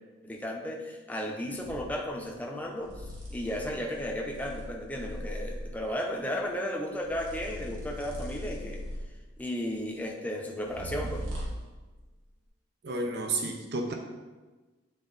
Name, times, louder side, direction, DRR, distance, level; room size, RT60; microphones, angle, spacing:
voice 1, 0.2-2.9 3.3-8.9 9.4-11.3, equal, 10° left, 0 dB, 0.7 m, -34 dB
sound 1, 1.6-1.9 2.8-5.8 7.0-9.3 10.6-11.7, equal, 90° right, 1.4 m, -39 dB
voice 2, 12.8-13.9, right 2 dB, 55° right, 3 dB, 0.7 m, -31 dB
9.3 x 3.7 x 4.0 m, 1.2 s
head